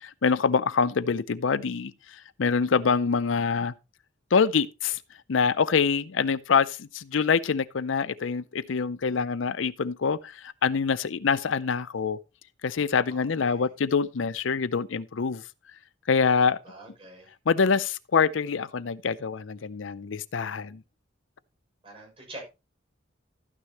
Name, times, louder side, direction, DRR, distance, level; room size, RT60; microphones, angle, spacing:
voice 1, 0.0-1.9 2.4-3.7 4.3-5.0 5.3-12.2 12.6-15.4 16.1-16.6 17.5-20.8, left 5 dB, 80° left, 0.6 m, -25 dB
voice 2, 13.1-13.7 16.6-17.3 21.8-22.5, right 1 dB, 30° right, 6.7 m, -45 dB
12.5 x 9.8 x 3.0 m
head